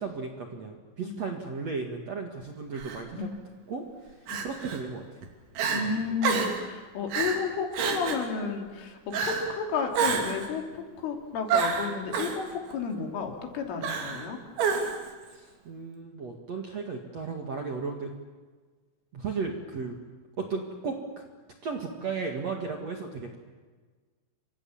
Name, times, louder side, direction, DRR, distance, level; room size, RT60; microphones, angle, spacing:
voice 1, 0.0-3.3 3.7-5.2 5.6-6.1 15.3-18.1 19.1-20.0 20.4-21.3 21.6-23.3, right 4 dB, 50° right, 3 dB, 2.2 m, -35 dB
Crying sobbing, 2.8-3.0 4.3-4.8 5.2-5.3 5.6-5.8 6.2-6.6 7.1-7.4 7.7-8.3 9.1-9.5 9.9-10.5 11.5-12.4 13.8-14.3 14.6-15.1, right 6 dB, 70° right, 5.0 m, -28 dB
voice 2, 5.7-14.4, left 5 dB, 80° left, 3 dB, 5.5 m, -32 dB
30.0 x 24.5 x 7.3 m, 1.4 s
omnidirectional pair, 5.7 m